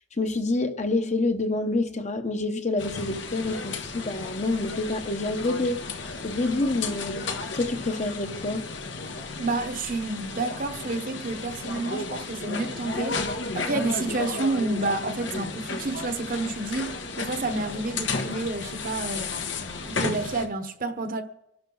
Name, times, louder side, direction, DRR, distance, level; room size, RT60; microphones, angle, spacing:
voice 1, 0.2-5.8 6.2-8.7, left 2 dB, 40° left, 1.0 m, -27 dB
sound 1, 2.8-20.5, left 3 dB, 80° left, 1.5 m, -33 dB
voice 2, 9.4-13.2 13.5-19.3 19.9-21.2, right 3 dB, 50° right, 1.1 m, -29 dB
26.0 x 11.5 x 4.0 m
head